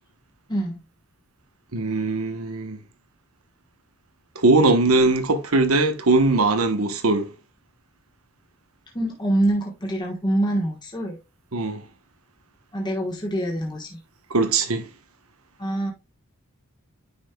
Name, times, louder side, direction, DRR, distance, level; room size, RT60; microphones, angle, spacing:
voice 1, 1.7-2.8 4.4-7.3 11.5-11.8 14.3-14.9, right 2 dB, 80° right, 1.1 m, -20 dB
voice 2, 8.9-11.2 12.7-14.0 15.6-15.9, right 1 dB, 20° left, 1.3 m, -25 dB
9.6 x 5.3 x 2.3 m
head